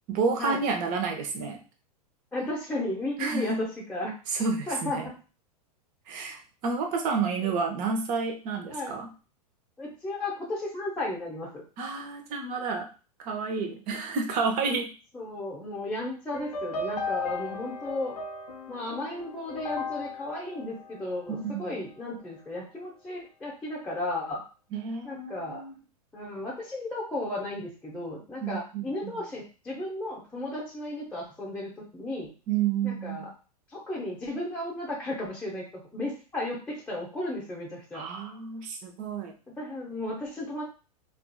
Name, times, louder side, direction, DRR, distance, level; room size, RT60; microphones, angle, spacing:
voice 1, 0.1-1.6 3.2-3.6 4.3-5.1 6.1-9.1 11.8-12.9 13.2-14.9 21.3-21.8 24.7-25.7 28.4-29.2 32.5-33.3 37.9-39.3, right 5 dB, 40° right, 3 dB, 0.9 m, -30 dB
voice 2, 2.3-4.1 4.7-5.1 7.4-7.5 8.7-8.9 9.8-11.5 15.1-18.2 18.7-24.4 25.0-25.6 26.1-32.3 32.8-33.3 33.7-38.0 39.5-40.6, left 1 dB, 5° left, -5 dB, 0.8 m, -34 dB
sound 1, 16.3-21.7, left 3 dB, 75° left, 0.6 m, -36 dB
3.7 x 2.5 x 2.3 m, 0.35 s
hypercardioid pair, 105°, 21 cm